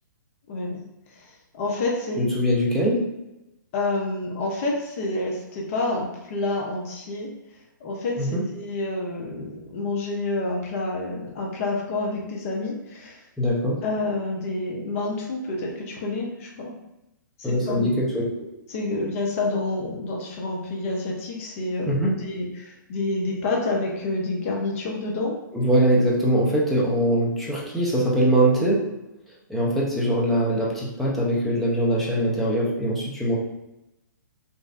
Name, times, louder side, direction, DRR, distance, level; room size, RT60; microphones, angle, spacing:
voice 1, 1.5-2.2 3.7-7.3 7.8-13.2 13.8-16.7 17.4-18.0 18.7-25.3, left 2 dB, 40° left, -1 dB, 0.6 m, -28 dB
voice 2, 2.2-3.0 8.2-8.4 13.4-13.8 17.4-18.2 21.9-22.1 25.5-28.8 29.5-33.4, right 1 dB, ahead, -7 dB, 0.6 m, -22 dB
3.1 x 2.5 x 2.5 m, 0.92 s
hypercardioid pair, 145°, 11 cm